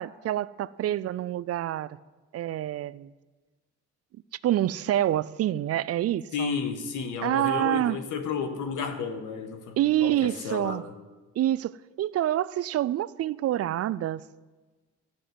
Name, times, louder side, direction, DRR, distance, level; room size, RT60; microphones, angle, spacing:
voice 1, 0.0-2.0 2.3-3.1 4.4-6.6 7.2-8.0 9.8-10.8 11.4-14.2, right 13 dB, 55° right, 0.4 m, -27 dB
voice 2, 6.3-10.9, left 6 dB, 80° left, 1.4 m, -32 dB
12.5 x 6.0 x 9.4 m
cardioid pair, 90°, 30 cm